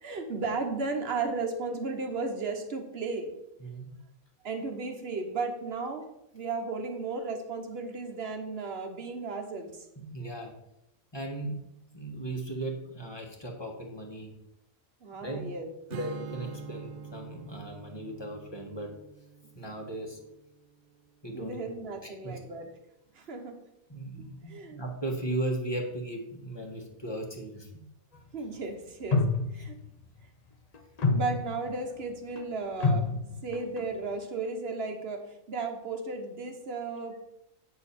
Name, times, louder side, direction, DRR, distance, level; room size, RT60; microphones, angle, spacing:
voice 1, 0.0-3.3 4.4-6.0 6.3-9.9 15.0-15.7 21.3-22.7 23.1-23.6 24.1-24.8 28.3-29.2 29.5-29.8 31.1-33.1 33.4-37.2, right 4 dB, 50° right, 5 dB, 1.3 m, -34 dB
voice 2, 3.6-3.9 10.0-10.5 11.1-11.6 11.9-14.3 15.2-15.4 15.9-18.9 19.5-20.2 21.2-21.8 22.2-22.4 23.9-27.8, right 1 dB, 20° left, 1 dB, 1.3 m, -36 dB
Strum, 15.9-21.2, right 6 dB, 65° right, 0.5 m, -45 dB
sound 1, 29.1-29.8 30.7-31.7 32.4-32.5 32.8-33.8, left 3 dB, 45° left, 0.5 m, -27 dB
8.8 x 6.3 x 4.3 m, 0.82 s
omnidirectional pair, 1.4 m